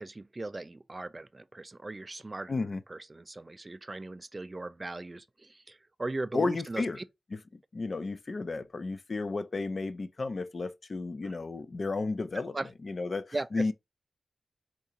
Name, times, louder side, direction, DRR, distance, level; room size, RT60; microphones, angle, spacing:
voice 1, 0.0-2.5 2.9-6.8 11.2-11.3 12.5-12.7 13.3-13.7, right 2 dB, 35° right, 0.3 m, -38 dB
voice 2, 2.5-2.8 6.3-7.0 7.7-12.6 12.8-13.7, left 3 dB, 55° left, 0.4 m, -32 dB
4.5 x 2.4 x 2.8 m
cardioid pair, 60°, 0 cm